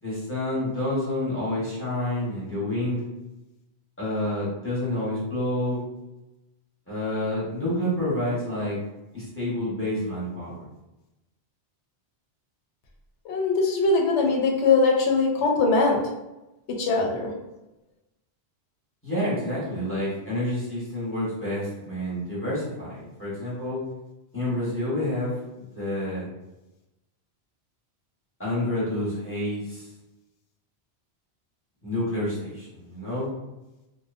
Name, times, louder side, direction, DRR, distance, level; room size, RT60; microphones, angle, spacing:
voice 1, 0.0-3.0 4.0-5.8 6.9-8.8 9.1-10.6 19.0-23.8 24.3-25.4 25.7-26.3 28.4-29.9 31.8-33.3, left 1 dB, 10° left, -9 dB, 1.0 m, -28 dB
voice 2, 13.3-16.0 16.8-17.3, left 3 dB, 85° left, 1 dB, 0.9 m, -21 dB
2.6 x 2.2 x 2.4 m, 0.99 s
omnidirectional pair, 1.1 m